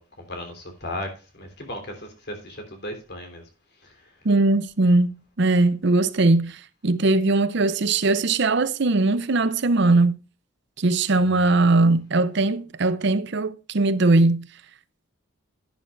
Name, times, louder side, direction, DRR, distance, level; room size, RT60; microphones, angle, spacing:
voice 1, 0.0-3.5 3.8-4.2 11.2-11.6, left 1 dB, 50° left, 3.3 m, -37 dB
voice 2, 4.2-5.1 5.4-10.2 10.8-14.5, right 2 dB, 55° right, 0.6 m, -20 dB
11.0 x 11.0 x 2.4 m
head